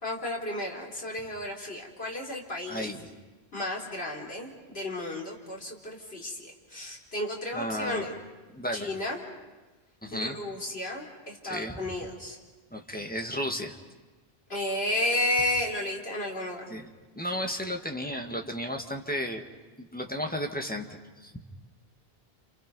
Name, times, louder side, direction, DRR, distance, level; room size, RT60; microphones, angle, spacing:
voice 1, 0.0-2.9 3.5-8.2 8.7-9.2 10.1-12.4 14.5-16.7, left 1 dB, 80° left, -2 dB, 4.0 m, -32 dB
voice 2, 2.7-3.1 7.5-8.1 8.5-8.9 10.0-10.4 11.4-11.8 12.7-13.8 16.7-16.9 17.2-19.4 19.8-21.4, equal, 10° left, 2 dB, 1.8 m, -33 dB
29.5 x 28.5 x 5.4 m, 1.2 s
omnidirectional pair, 1.0 m